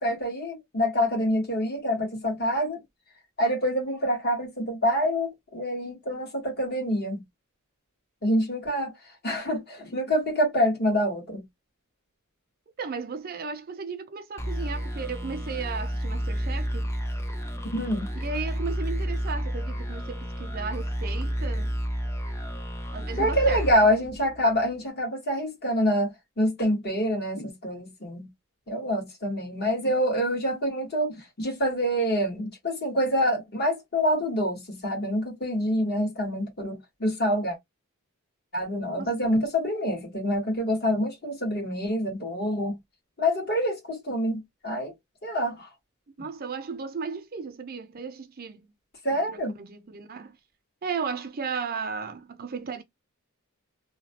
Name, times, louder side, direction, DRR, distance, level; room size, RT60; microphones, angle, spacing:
voice 1, 0.0-2.8 3.4-7.2 8.2-8.9 9.2-11.4 17.7-18.1 23.2-28.3 28.7-37.6 38.5-42.8 43.2-44.9 45.2-45.7 49.0-49.6, equal, 50° left, 1.5 m, -26 dB
voice 2, 12.8-16.9 18.2-21.8 22.9-23.9 39.0-39.1 46.2-48.7 49.3-50.4 50.8-52.8, right 5 dB, 45° right, 0.5 m, -35 dB
sound 1, 14.4-24.7, equal, 10° left, 0.5 m, -31 dB
2.9 x 2.2 x 2.8 m
head